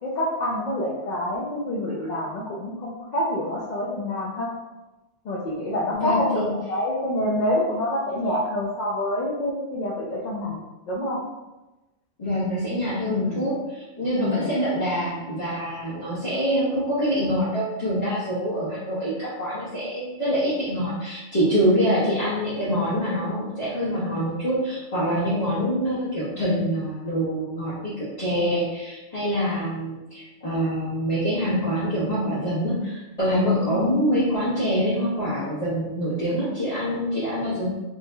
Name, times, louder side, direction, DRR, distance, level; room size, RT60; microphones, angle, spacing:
voice 1, 0.0-4.5 5.2-10.6 10.9-11.2 13.1-13.4 14.1-14.5 33.7-33.9, left 1 dB, 50° left, -5 dB, 0.5 m, -27 dB
voice 2, 5.9-6.5 12.2-37.7, equal, 35° left, -13 dB, 1.2 m, -25 dB
4.5 x 2.8 x 2.2 m, 1.1 s
omnidirectional pair, 1.2 m